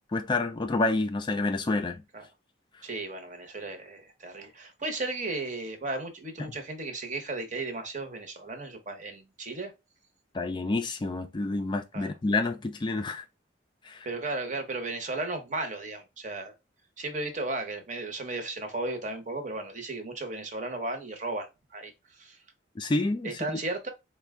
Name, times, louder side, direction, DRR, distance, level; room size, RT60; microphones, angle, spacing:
voice 1, 0.1-2.0 10.3-13.2 13.8-14.1 22.8-23.4, left 2 dB, 25° left, 0.3 m, -28 dB
voice 2, 2.8-9.7 11.9-12.1 14.0-16.5 17.0-21.5 21.7-22.4 23.2-23.9, right 2 dB, 40° right, 0.8 m, -35 dB
4.1 x 2.2 x 3.5 m
head